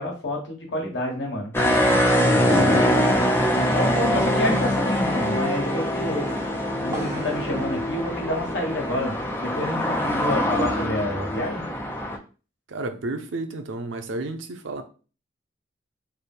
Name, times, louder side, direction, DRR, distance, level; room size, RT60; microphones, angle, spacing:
voice 1, 0.0-1.5 2.2-3.2 3.7-6.3 6.8-11.6, left 1 dB, 75° left, 1.4 m, -28 dB
sound 1, 1.5-12.2, equal, 10° left, 0.5 m, -23 dB
sound 2, 2.5-9.0, equal, 15° right, 0.9 m, -32 dB
voice 2, 12.7-14.8, right 2 dB, 85° right, 0.6 m, -31 dB
3.3 x 2.2 x 4.2 m
head